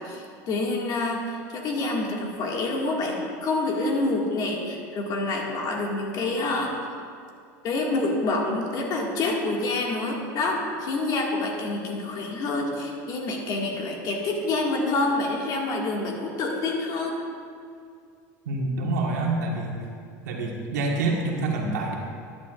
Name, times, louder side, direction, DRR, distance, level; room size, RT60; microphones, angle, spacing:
voice 1, 0.0-6.8 7.6-17.2, left 2 dB, 50° left, -1 dB, 2.0 m, -27 dB
voice 2, 18.4-19.8 20.2-21.9, right 2 dB, 90° right, -1 dB, 1.6 m, -27 dB
13.5 x 10.5 x 2.5 m, 2.3 s
supercardioid pair, 115°, 9 cm